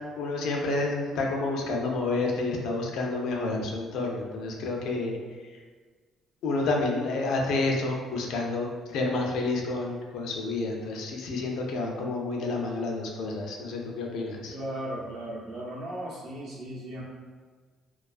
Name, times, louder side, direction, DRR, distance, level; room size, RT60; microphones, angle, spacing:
voice 1, 0.2-5.2 5.5-5.6 6.4-14.5, left 3 dB, 75° left, 0 dB, 0.4 m, -29 dB
voice 2, 14.5-17.0, right 1 dB, 50° right, -4 dB, 0.6 m, -36 dB
2.3 x 2.3 x 2.4 m, 1.5 s
cardioid pair, 155°, 0 cm